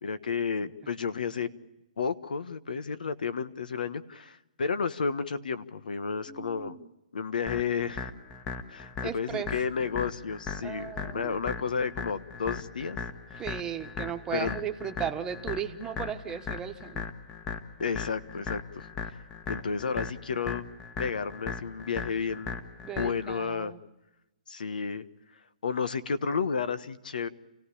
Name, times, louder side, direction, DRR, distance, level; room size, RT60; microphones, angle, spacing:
voice 1, 0.0-1.5 2.0-6.8 7.1-8.1 8.7-13.0 13.3-13.4 14.3-14.6 17.8-19.2 19.5-20.7 21.0-22.5 23.0-23.7 24.5-25.0 25.6-27.3, left 5 dB, 85° left, 13 dB, 1.3 m, -32 dB
voice 2, 6.3-6.9 9.0-9.5 10.6-11.4 13.4-17.0 22.8-23.8, right 8 dB, 15° right, 5 dB, 1.3 m, -36 dB
sound 1, 7.5-23.4, left 5 dB, 20° left, 1.3 m, -38 dB
29.0 x 16.5 x 8.6 m, 0.97 s
hypercardioid pair, 150°, 4 cm